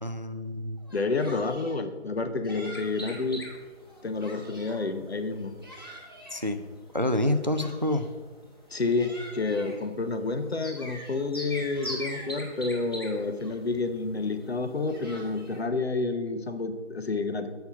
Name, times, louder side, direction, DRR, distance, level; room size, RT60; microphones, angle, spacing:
voice 1, 0.0-0.8 6.3-6.6 6.9-8.1, left 1 dB, 40° right, 9 dB, 0.4 m, -27 dB
Yell, 0.8-1.8 2.4-3.2 3.8-4.8 5.3-6.5 7.2-8.2 8.7-9.8 10.3-12.4 13.0-13.1 13.4-13.9 14.6-15.7, equal, 20° right, 1.1 m, -48 dB
voice 2, 0.9-3.4 4.0-5.5 8.7-17.5, left 3 dB, 60° left, 8 dB, 0.9 m, -29 dB
sound 1, 2.7-15.6, equal, 20° left, 1.0 m, -44 dB
7.8 x 5.8 x 5.7 m, 1.4 s
figure-of-eight pair, 180°, 35 cm